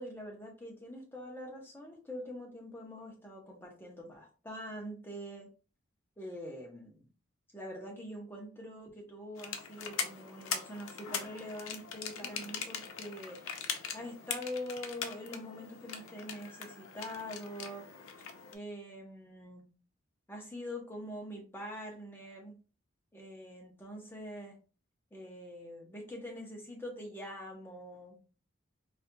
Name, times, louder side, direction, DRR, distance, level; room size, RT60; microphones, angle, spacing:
voice 1, 0.0-5.5 6.2-7.1 7.5-13.6 13.9-17.9 18.5-19.7 20.3-22.6 23.1-24.6 25.1-28.2, equal, 10° left, 0 dB, 0.8 m, -44 dB
sound 1, 9.4-18.5, left 6 dB, 85° left, 0.6 m, -41 dB
4.1 x 2.8 x 2.2 m, 0.36 s
head